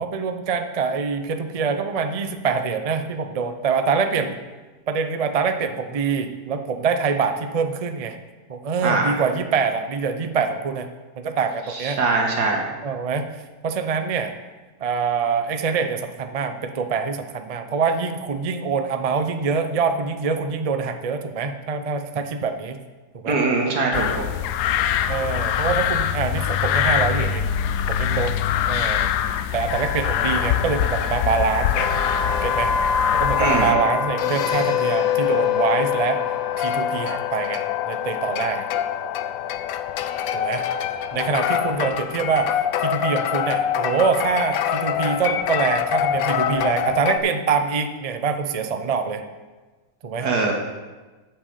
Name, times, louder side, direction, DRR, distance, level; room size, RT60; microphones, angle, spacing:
voice 1, 0.0-4.4 4.9-8.2 8.5-10.9 11.2-12.0 12.8-14.3 14.8-22.8 23.2-23.4 25.1-27.5 27.9-29.1 29.5-31.9 32.4-32.7 33.1-36.2 36.6-38.7 40.3-40.6 41.1-49.2 50.0-50.3, right 5 dB, 50° right, 7 dB, 0.4 m, -25 dB
voice 2, 8.8-9.2 11.7-12.7 23.3-24.3 33.4-33.8 50.2-50.5, right 3 dB, 80° right, 1 dB, 2.2 m, -22 dB
sound 1, 23.9-33.7, left 10 dB, 85° left, 1.2 m, -24 dB
sound 2, 29.7-47.2, left 8 dB, 70° left, 1.0 m, -25 dB
9.1 x 6.8 x 6.8 m, 1.2 s
omnidirectional pair, 1.7 m